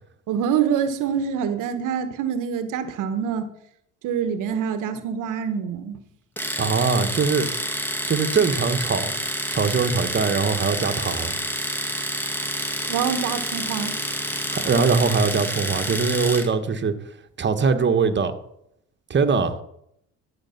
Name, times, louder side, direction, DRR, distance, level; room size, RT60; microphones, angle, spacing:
voice 1, 0.3-3.5 4.0-6.0 12.9-14.0, right 7 dB, 65° right, 1.2 m, -25 dB
Domestic sounds home sounds, 6.4-16.5, equal, 5° left, 1.7 m, -28 dB
voice 2, 6.6-7.5 8.0-9.1 9.5-11.3 14.5-17.0 17.4-18.3 19.1-19.6, right 5 dB, 35° right, 1.4 m, -22 dB
13.0 x 6.5 x 5.8 m
supercardioid pair, 80°, 33 cm